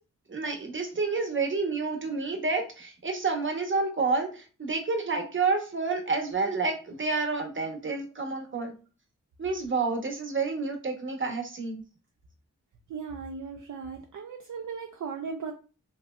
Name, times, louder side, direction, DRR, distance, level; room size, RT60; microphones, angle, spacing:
voice 1, 0.3-8.7 9.4-11.8, right 4 dB, 35° right, 4 dB, 0.8 m, -29 dB
voice 2, 12.9-15.5, right 5 dB, 65° right, 3 dB, 0.5 m, -37 dB
2.9 x 2.6 x 2.2 m, 0.35 s
cardioid pair, 45°, 33 cm